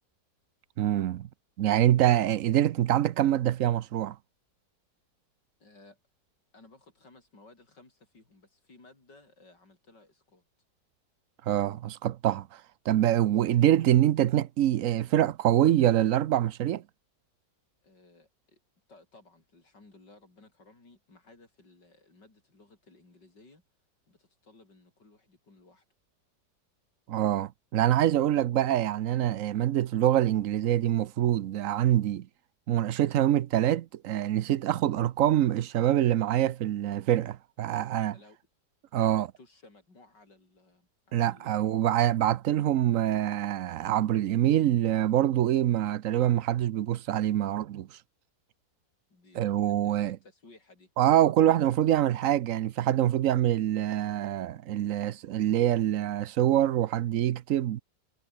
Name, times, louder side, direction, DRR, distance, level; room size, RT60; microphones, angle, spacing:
voice 1, 0.8-1.3 1.6-4.2 11.5-12.6 12.9-16.8 27.1-32.3 32.7-38.1 38.9-39.3 41.1-47.9 49.4-50.2 51.0-57.8, right 12 dB, 60° right, 0.9 m, -25 dB
voice 2, 5.6-6.0 6.5-10.4 13.3-13.4 17.8-18.6 18.9-23.6 24.1-25.8 38.1-38.4 38.9-41.8 49.1-50.9, left 3 dB, 80° left, 6.2 m, -57 dB
omnidirectional pair, 1.9 m